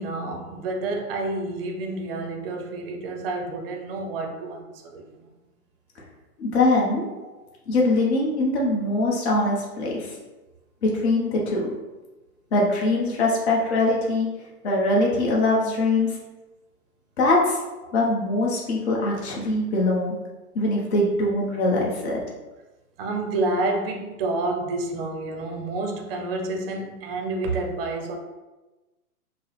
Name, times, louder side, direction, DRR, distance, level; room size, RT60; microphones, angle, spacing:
voice 1, 0.0-5.3 17.8-17.9 23.0-28.2, right 2 dB, 40° right, 0.6 m, -29 dB
voice 2, 6.4-7.1 7.7-10.1 10.8-11.7 12.5-14.3 14.6-16.2 17.2-17.6 17.9-20.2 20.5-22.2, left 2 dB, 45° left, 1.1 m, -22 dB
5.2 x 2.1 x 3.3 m
hypercardioid pair, 135°, 45 cm